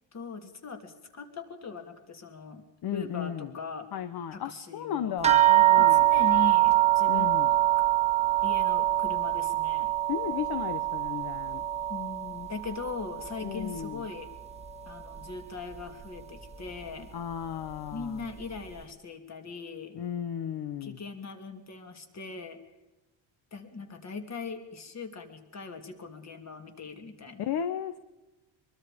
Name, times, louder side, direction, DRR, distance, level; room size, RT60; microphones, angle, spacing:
voice 1, 0.1-2.6 2.9-3.9 4.3-5.1 5.8-7.8 8.4-9.9 11.9-14.3 14.9-17.1 17.9-20.0 20.8-22.6 23.5-27.5, left 4 dB, 30° left, 5 dB, 3.1 m, -40 dB
voice 2, 2.8-3.5 3.9-6.1 7.1-7.5 10.1-11.6 13.4-14.0 17.1-18.2 19.9-21.0 27.4-28.0, left 9 dB, 50° left, 11 dB, 1.1 m, -34 dB
sound 1, 5.2-14.1 14.4-15.3 16.0-16.1 16.5-16.7, right 14 dB, 15° right, 1.6 m, -24 dB
24.0 x 23.5 x 5.2 m, 1.0 s
cardioid pair, 150°, 49 cm